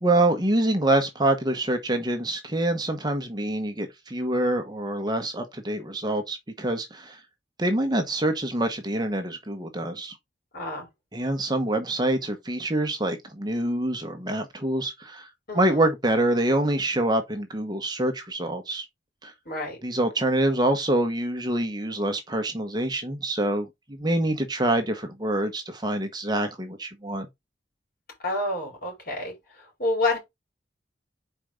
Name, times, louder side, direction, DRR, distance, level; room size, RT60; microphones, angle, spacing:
voice 1, 0.0-7.2 7.6-10.2 11.1-15.3 15.5-18.8 19.2-19.3 19.8-27.3, right 1 dB, 20° right, 1.0 m, -26 dB
voice 2, 10.5-10.9 15.5-15.8 19.4-19.8 24.0-24.2 28.2-30.2, left 2 dB, 50° left, 4.5 m, -29 dB
5.0 x 4.6 x 5.1 m
head